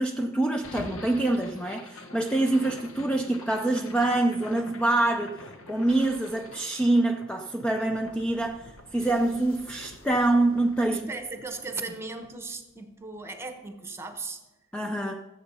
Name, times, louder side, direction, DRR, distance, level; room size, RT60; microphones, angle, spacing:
voice 1, 0.0-5.4 5.7-11.1 14.7-15.2, right 2 dB, 5° left, 4 dB, 0.4 m, -25 dB
sound 1, 0.6-12.8, left 2 dB, 70° left, 1.3 m, -46 dB
voice 2, 10.9-14.4, right 3 dB, 10° right, 7 dB, 1.0 m, -37 dB
14.5 x 7.9 x 5.5 m, 1.1 s
head